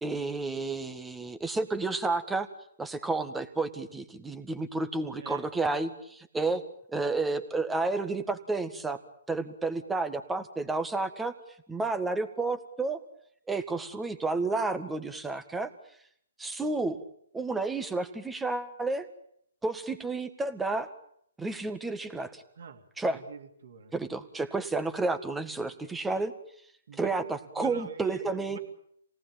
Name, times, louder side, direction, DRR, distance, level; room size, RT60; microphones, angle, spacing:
voice 1, 0.0-2.5 2.8-6.6 6.9-9.0 9.3-11.3 11.7-13.0 13.5-15.7 16.4-17.0 17.3-19.1 19.6-20.9 21.4-22.4 23.0-23.2 23.9-26.3 27.0-28.6, right 3 dB, 5° right, 9 dB, 1.8 m, -31 dB
voice 2, 23.1-23.9 26.9-27.1 27.6-28.6, right 5 dB, 65° right, 6 dB, 3.1 m, -44 dB
27.5 x 18.5 x 9.2 m, 0.70 s
hypercardioid pair, 140°, 0 cm